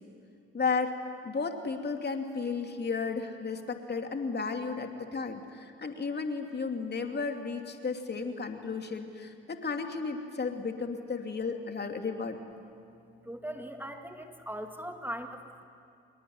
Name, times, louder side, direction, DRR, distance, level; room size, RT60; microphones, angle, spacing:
voice 1, 0.5-1.0 1.2-12.4, left 4 dB, 35° left, 5 dB, 2.9 m, -33 dB
voice 2, 13.3-15.7, equal, 5° right, 5 dB, 2.1 m, -40 dB
26.0 x 22.5 x 9.6 m, 2.5 s
hypercardioid pair, 50°, 29 cm